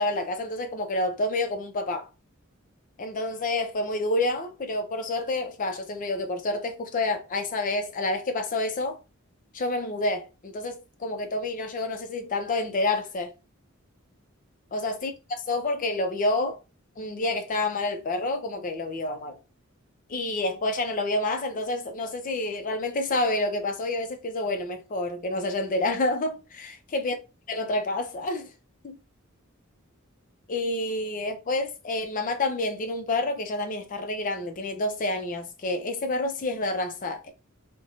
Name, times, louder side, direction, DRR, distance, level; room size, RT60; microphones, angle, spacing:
voice 1, 0.0-2.1 3.0-9.0 9.5-13.3 14.7-16.6 17.0-19.4 20.1-27.1 27.5-28.5 28.8-29.0 30.5-37.3, left 2 dB, 40° left, 0.5 m, -28 dB
2.5 x 2.1 x 2.9 m
head